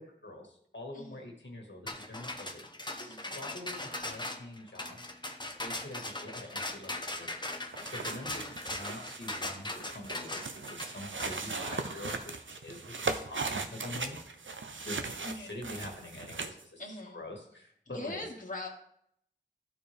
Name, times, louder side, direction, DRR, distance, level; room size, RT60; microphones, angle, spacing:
voice 1, 0.2-2.7 3.0-5.0 5.6-7.4 7.8-14.4 14.8-16.8 17.1-18.2, left 1 dB, 70° left, 0 dB, 1.8 m, -45 dB
voice 2, 0.9-1.2 3.0-3.4 7.8-8.0 15.2-15.5 16.8-17.2 17.9-18.7, left 2 dB, 40° left, -3 dB, 1.4 m, -42 dB
sound 1, 1.9-12.2, left 1 dB, 25° left, 0.9 m, -39 dB
sound 2, 7.5-16.6, right 4 dB, 85° right, 0.6 m, -38 dB
13.0 x 4.5 x 3.4 m, 0.68 s
wide cardioid pair, 45°, 19 cm